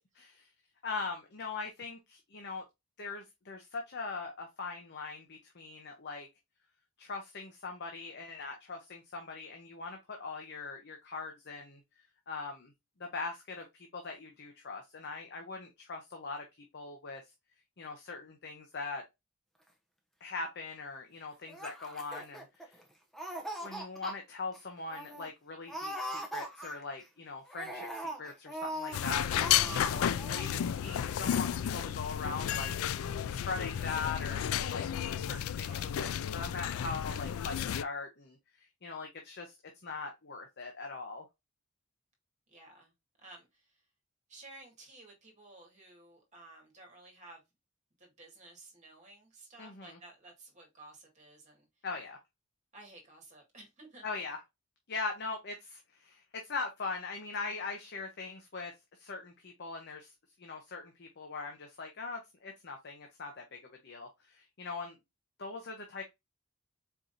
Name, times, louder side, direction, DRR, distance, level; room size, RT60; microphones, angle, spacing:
voice 1, 0.8-2.6 3.0-6.3 7.0-11.8 12.3-12.7 13.0-17.2 17.8-19.0 20.2-22.8 23.6-32.7 33.3-39.6 39.8-41.2 49.6-50.0 51.8-52.2 54.0-54.4 54.9-58.7 59.0-60.1 60.4-65.0 65.4-66.0, left 4 dB, 50° left, 0.8 m, -41 dB
Laughter, 21.5-22.8 23.1-24.1 24.5-24.6 24.9-25.3 25.7-27.0 27.5-29.0 29.3-29.9 30.2-30.5, right 1 dB, ahead, 0.8 m, -40 dB
sound 1, 28.9-37.8, left 10 dB, 70° left, 0.3 m, -32 dB
voice 2, 35.6-35.9 42.5-42.9 43.2-43.8 44.3-47.4 48.0-51.9 52.7-54.1, right 2 dB, 35° right, 1.9 m, -54 dB
4.6 x 3.8 x 2.6 m
head